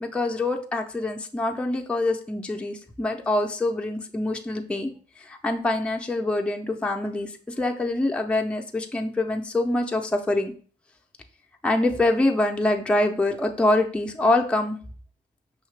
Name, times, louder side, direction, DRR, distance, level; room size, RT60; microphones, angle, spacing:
voice 1, 0.0-10.5 11.6-14.8, left 2 dB, 5° left, 3 dB, 0.5 m, -25 dB
5.5 x 2.8 x 3.2 m, 0.43 s
cardioid pair, 90°, 20 cm